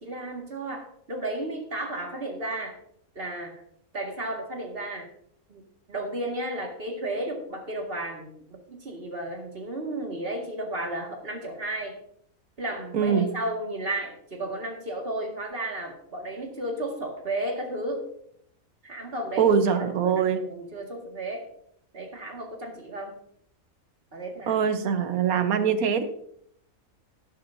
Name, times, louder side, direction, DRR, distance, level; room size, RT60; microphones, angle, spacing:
voice 1, 0.0-2.8 3.1-3.5 3.9-5.1 5.5-5.6 5.9-12.0 12.6-18.0 18.8-19.5 19.9-21.4 21.9-23.2 24.1-24.6, right 1 dB, 45° right, 1 dB, 2.1 m, -33 dB
voice 2, 12.9-13.3 19.4-20.4 24.5-26.0, right 7 dB, 85° right, 9 dB, 1.4 m, -23 dB
12.5 x 11.0 x 2.7 m, 0.69 s
omnidirectional pair, 1.5 m